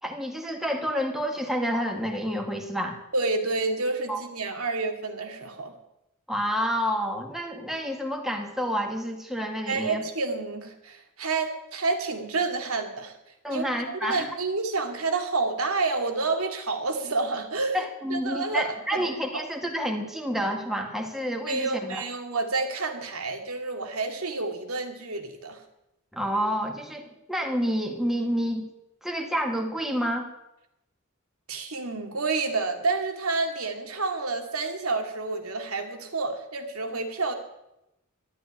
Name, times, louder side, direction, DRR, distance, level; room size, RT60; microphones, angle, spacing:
voice 1, 0.0-3.0 4.1-4.2 6.3-10.0 13.4-14.3 17.7-22.0 26.1-28.6 29.0-30.3, equal, ahead, 2 dB, 1.8 m, -29 dB
voice 2, 3.1-5.8 9.7-13.2 13.5-19.4 21.5-25.6 31.5-37.3, right 3 dB, 90° right, 5 dB, 2.3 m, -29 dB
12.5 x 10.5 x 9.9 m, 0.89 s
head